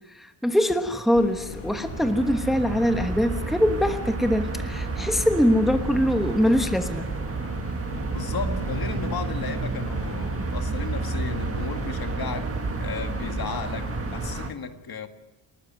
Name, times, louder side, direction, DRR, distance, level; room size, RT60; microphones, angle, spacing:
voice 1, 0.1-7.0, equal, ahead, 1.2 m, -23 dB
sound 1, 1.1-14.6, left 8 dB, 90° left, 1.7 m, -40 dB
sound 2, 1.5-14.5, right 4 dB, 30° right, 1.5 m, -31 dB
voice 2, 8.1-12.5 12.8-15.1, left 6 dB, 45° left, 2.0 m, -34 dB
29.5 x 13.0 x 9.3 m
wide cardioid pair, 170°, 49 cm